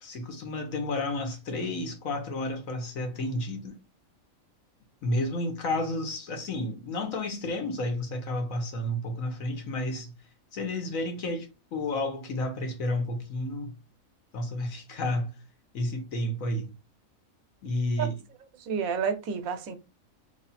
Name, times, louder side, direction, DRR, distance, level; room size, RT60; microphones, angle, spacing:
voice 1, 0.0-3.8 5.0-10.1 10.5-13.8 14.3-15.4 15.7-16.7 17.6-18.2, left 1 dB, 75° left, 1.4 m, -31 dB
voice 2, 18.6-19.8, right 6 dB, 85° right, 1.1 m, -30 dB
3.3 x 3.1 x 4.1 m
omnidirectional pair, 1.4 m